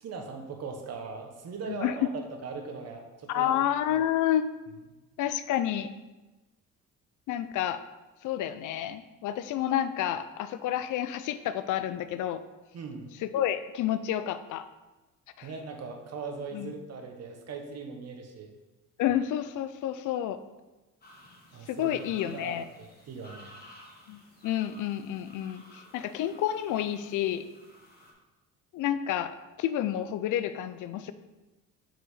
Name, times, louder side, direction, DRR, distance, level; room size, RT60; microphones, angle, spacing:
voice 1, 0.0-2.1 2.4-3.5 3.9-4.0 12.7-13.1 15.4-18.5 21.5-22.0 22.3-23.5, right 4 dB, 50° right, 4 dB, 1.1 m, -40 dB
voice 2, 3.3-4.5 5.2-5.9 7.3-7.8 8.2-12.4 13.2-14.7 15.4-15.5 16.5-16.7 19.0-20.4 21.7-22.6 24.1-27.4 28.7-31.1, left 11 dB, 65° left, 12 dB, 0.5 m, -30 dB
sound 1, 21.0-28.1, left 1 dB, 30° left, 1.5 m, -54 dB
5.9 x 4.9 x 4.0 m, 1.1 s
cardioid pair, 105°, 33 cm